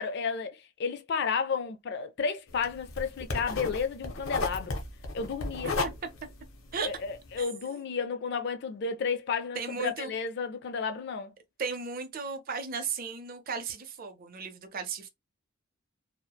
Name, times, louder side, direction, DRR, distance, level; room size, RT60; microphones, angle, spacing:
voice 1, 0.0-4.8 5.1-5.7 6.8-11.3, left 5 dB, 55° left, 0.4 m, -32 dB
sound 1, 2.5-7.4, left 3 dB, 90° left, 0.7 m, -35 dB
voice 2, 7.4-7.8 9.5-10.1 11.6-15.1, right 5 dB, 45° right, 0.5 m, -35 dB
2.8 x 2.1 x 2.2 m
head